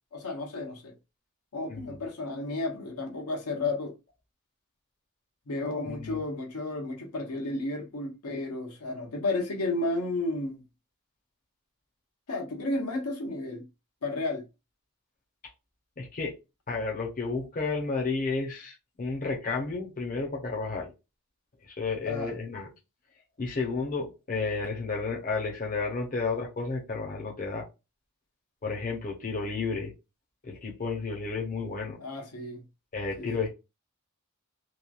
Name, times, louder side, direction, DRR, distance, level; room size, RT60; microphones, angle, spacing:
voice 1, 0.1-0.9 1.5-3.9 5.5-10.6 12.3-13.6 14.0-14.4 22.1-22.3 32.0-32.6 33.2-33.3, left 2 dB, 85° left, 0.9 m, -32 dB
voice 2, 5.8-6.2 16.0-16.3 16.7-20.9 21.6-22.7 23.4-27.7 28.6-29.9 30.4-32.0 32.9-33.5, left 4 dB, 40° left, 0.7 m, -32 dB
3.0 x 2.3 x 2.3 m
head